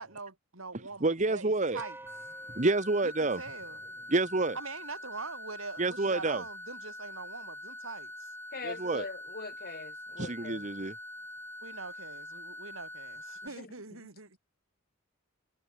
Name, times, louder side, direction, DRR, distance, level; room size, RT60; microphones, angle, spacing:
voice 1, 0.0-2.0 3.0-3.8 4.5-8.3 11.6-14.4, right 4 dB, 75° right, 3.1 m, -43 dB
voice 2, 1.0-1.8 2.5-3.4 4.1-4.6 5.8-6.4 8.6-9.1 10.2-10.9, right 2 dB, 35° right, 1.3 m, -28 dB
sound 1, 1.8-4.3, right 2 dB, 10° right, 5.3 m, -50 dB
sound 2, 2.1-13.5, left 1 dB, 10° left, 6.8 m, -44 dB
voice 3, 8.5-10.6 13.6-13.7, left 3 dB, 45° left, 2.3 m, -41 dB
head